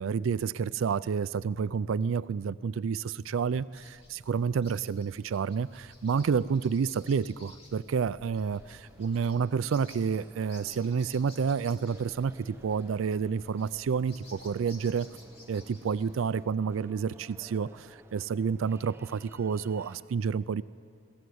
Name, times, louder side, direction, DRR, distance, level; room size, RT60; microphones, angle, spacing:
voice 1, 0.0-15.1 15.5-20.6, right 6 dB, 85° right, 17 dB, 0.4 m, -29 dB
sound 1, 3.7-16.4, left 1 dB, 30° left, 2.6 m, -55 dB
sound 2, 8.4-20.0, right 1 dB, 10° right, 0.8 m, -55 dB
22.5 x 16.0 x 7.9 m, 2.6 s
head